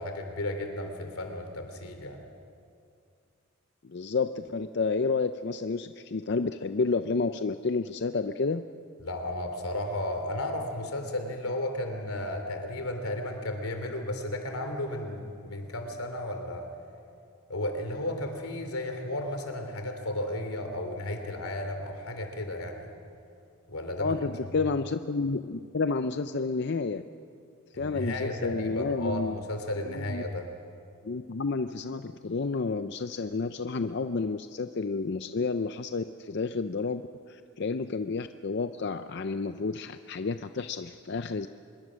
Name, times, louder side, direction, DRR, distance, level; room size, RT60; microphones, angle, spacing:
voice 1, 0.0-2.2 9.0-16.7 17.5-22.9 23.7-24.1 27.7-30.5, left 1 dB, 85° left, 5 dB, 3.0 m, -34 dB
voice 2, 3.8-8.6 24.0-27.0 27.8-29.3 29.9-30.2 31.0-37.0 37.3-41.5, left 4 dB, 50° left, 9 dB, 0.5 m, -30 dB
25.0 x 22.0 x 6.4 m, 2.4 s
head